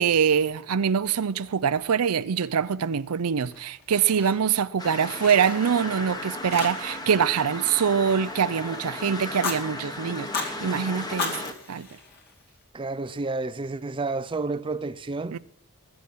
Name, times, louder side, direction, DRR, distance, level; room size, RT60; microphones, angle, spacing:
voice 1, 0.0-11.4 11.7-11.9 15.3-15.4, right 7 dB, 80° right, 0.5 m, -24 dB
Fire, 3.5-4.6 4.9-6.1 6.5-7.1 7.3-8.7 9.2-9.6 10.1-10.5 11.0-12.6, left 4 dB, 45° left, 2.4 m, -35 dB
sound 1, 4.8-11.5, left 1 dB, 20° left, 1.3 m, -35 dB
voice 2, 12.7-15.4, right 3 dB, 25° right, 0.4 m, -30 dB
20.5 x 7.1 x 6.1 m
head